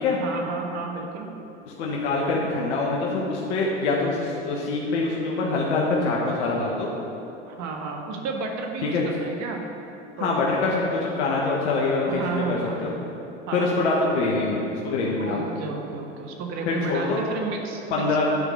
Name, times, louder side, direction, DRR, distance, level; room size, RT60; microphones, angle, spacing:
voice 1, 0.2-1.3 7.5-9.6 10.2-10.6 12.1-12.8 13.5-13.7 15.2-18.5, right 4 dB, 55° right, 2 dB, 1.6 m, -32 dB
voice 2, 1.8-6.9 8.9-9.0 10.2-12.9 13.5-15.4 16.7-17.2 17.9-18.3, left 3 dB, 75° left, -3 dB, 1.5 m, -24 dB
10.5 x 4.9 x 6.7 m, 2.9 s
hypercardioid pair, 85°, 34 cm